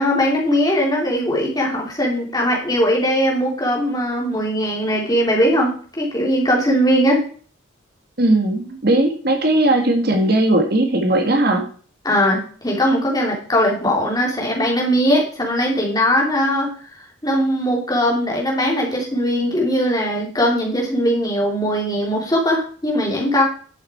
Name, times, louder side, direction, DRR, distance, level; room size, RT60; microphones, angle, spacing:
voice 1, 0.0-7.2 12.0-23.4, equal, 20° left, -1 dB, 3.3 m, -20 dB
voice 2, 8.2-11.6, right 1 dB, 50° right, 4 dB, 1.8 m, -17 dB
11.0 x 7.9 x 4.5 m, 0.43 s
head